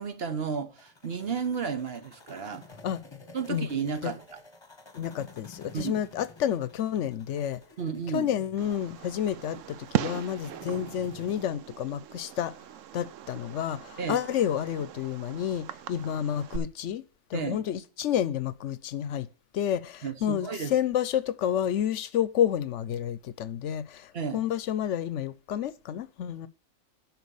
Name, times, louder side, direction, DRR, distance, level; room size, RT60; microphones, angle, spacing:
voice 1, 0.0-2.6 3.3-4.4 5.7-6.0 7.8-8.3 14.0-14.2 17.3-17.6 20.0-20.7 24.1-24.5, right 6 dB, 55° right, 1.3 m, -32 dB
sound 1, 0.8-11.4, left 3 dB, 20° left, 1.2 m, -51 dB
voice 2, 4.9-7.6 8.1-12.5 12.9-17.0 17.3-19.3 19.5-26.5, left 10 dB, 70° left, 1.0 m, -30 dB
Fireworks, 8.6-16.6, right 11 dB, 80° right, 1.0 m, -38 dB
10.5 x 4.3 x 7.0 m
omnidirectional pair, 1.3 m